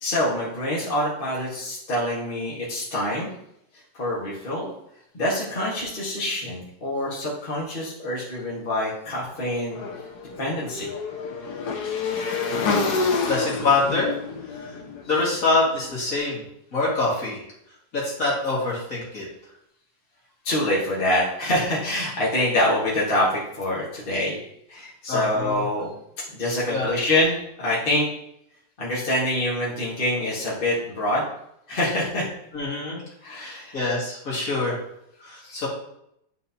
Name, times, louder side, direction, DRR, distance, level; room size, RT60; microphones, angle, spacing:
voice 1, 0.0-3.3 3.9-4.7 5.1-9.8 10.4-10.9 20.4-24.4 24.7-25.9 26.3-28.1 28.8-31.2 31.7-32.3 33.2-33.8 35.3-35.6, left 1 dB, 30° left, -6 dB, 1.7 m, -25 dB
Motorcycle / Engine, 9.7-15.9, left 4 dB, 70° left, 1.4 m, -28 dB
voice 2, 13.3-14.1 15.0-16.4 16.7-17.4 17.9-19.3 25.1-25.6 26.7-26.9 32.5-33.0 33.4-34.8 35.2-35.7, left 3 dB, 50° left, -6 dB, 2.5 m, -25 dB
10.5 x 4.2 x 2.8 m, 0.76 s
omnidirectional pair, 1.9 m